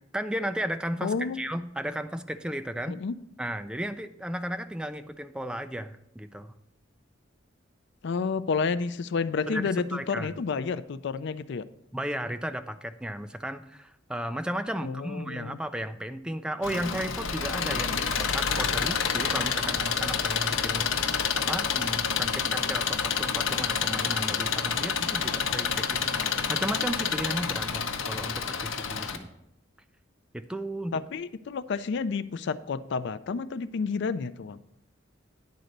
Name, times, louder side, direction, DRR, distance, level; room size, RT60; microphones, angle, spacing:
voice 1, 0.1-3.0 3.4-6.5 9.5-10.3 11.9-26.1 26.5-29.3 30.3-31.0, right 1 dB, 5° right, 9 dB, 0.4 m, -34 dB
voice 2, 1.0-1.4 2.9-3.1 8.0-11.7 14.8-15.6 17.9-18.0 30.9-34.6, left 5 dB, 60° left, 14 dB, 0.4 m, -30 dB
Engine, 16.6-29.2, left 6 dB, 80° left, 0.8 m, -28 dB
10.5 x 4.0 x 6.5 m, 0.82 s
head